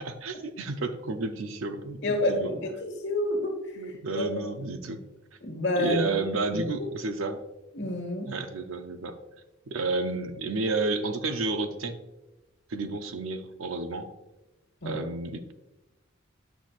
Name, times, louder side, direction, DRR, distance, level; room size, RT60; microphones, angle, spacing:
voice 1, 0.0-2.5 3.8-5.1 5.8-7.4 8.3-9.2 9.7-12.0 12.7-14.1 14.8-15.5, right 3 dB, 80° right, 8 dB, 0.6 m, -31 dB
voice 2, 2.0-3.6 4.1-4.5 5.4-6.1 6.5-6.6 7.7-8.3 14.8-15.0, left 1 dB, 60° left, 3 dB, 1.3 m, -28 dB
8.7 x 6.0 x 2.4 m, 1.0 s
head